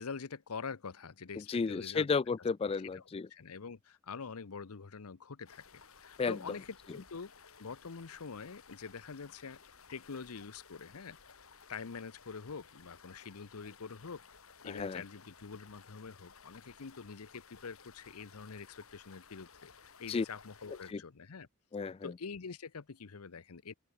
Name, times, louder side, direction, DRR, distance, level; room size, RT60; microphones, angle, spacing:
voice 1, 0.0-2.1 2.9-3.0 3.3-7.3 7.6-9.6 9.9-11.4 11.7-14.2 14.6-21.5 22.0-23.7, left 5 dB, 85° left, 0.8 m, -45 dB
voice 2, 1.4-3.3 6.2-6.4 14.7-15.0 20.1-20.3 20.9-21.0 21.7-22.1, left 5 dB, 25° left, 0.3 m, -33 dB
sound 1, 5.5-20.9, left 6 dB, 70° left, 2.5 m, -58 dB
open air
head